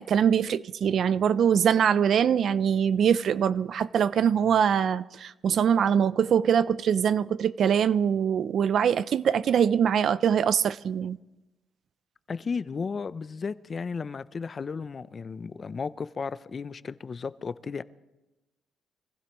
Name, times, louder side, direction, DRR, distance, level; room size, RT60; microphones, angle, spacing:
voice 1, 0.0-11.2, right 8 dB, 55° right, 0.4 m, -23 dB
voice 2, 12.3-17.8, left 5 dB, 35° left, 0.4 m, -34 dB
25.0 x 15.5 x 3.0 m
cardioid pair, 125°, 0 cm